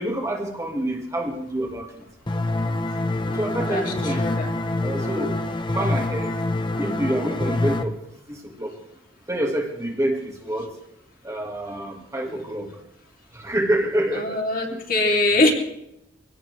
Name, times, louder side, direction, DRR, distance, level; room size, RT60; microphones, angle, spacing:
voice 1, 0.0-2.0 3.3-4.3 4.8-5.4 5.7-6.3 6.8-8.0 8.3-8.8 9.3-10.8 11.2-12.8 13.3-14.4 14.7-14.8, right 1 dB, 15° right, 0 dB, 1.8 m, -27 dB
sound 1, 2.3-7.8, left 2 dB, 25° left, 0.8 m, -26 dB
voice 2, 4.2-4.5 14.1-15.5, left 2 dB, 50° left, 0 dB, 2.8 m, -22 dB
24.0 x 17.5 x 3.3 m, 0.80 s
head